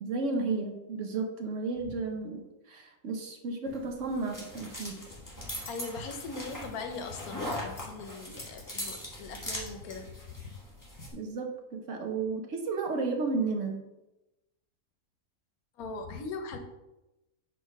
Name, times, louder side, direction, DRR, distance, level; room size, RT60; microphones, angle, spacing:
voice 1, 0.0-2.4 2.7-5.0 11.1-13.8, right 3 dB, 60° right, 4 dB, 1.1 m, -33 dB
sound 1, 3.7-11.1, left 1 dB, 15° left, 1.4 m, -40 dB
voice 2, 5.7-10.5 11.0-11.1 15.8-16.6, left 4 dB, 85° left, 6 dB, 1.3 m, -40 dB
4.6 x 4.5 x 5.0 m, 0.97 s
omnidirectional pair, 1.5 m